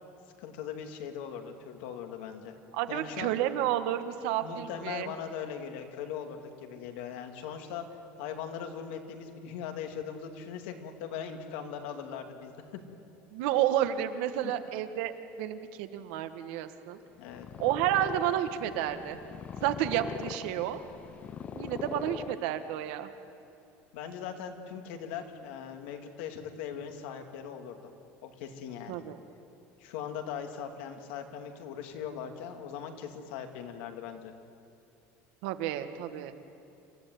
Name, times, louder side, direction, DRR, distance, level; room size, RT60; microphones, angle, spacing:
voice 1, 0.4-2.5 2.9-3.3 4.4-7.8 8.2-12.8 14.4-14.5 17.2-17.5 23.9-27.9 28.2-29.0 29.8-34.3, left 8 dB, 75° left, 5 dB, 2.5 m, -40 dB
voice 2, 2.7-5.1 13.3-15.1 15.4-17.0 17.6-19.2 19.6-20.8 21.5-23.1 28.9-29.2 35.4-36.3, right 12 dB, 70° right, 9 dB, 1.4 m, -31 dB
Purr, 17.2-22.9, left 7 dB, 25° left, 0.6 m, -42 dB
27.5 x 15.0 x 9.4 m, 2.6 s
cardioid pair, 175°, 6 cm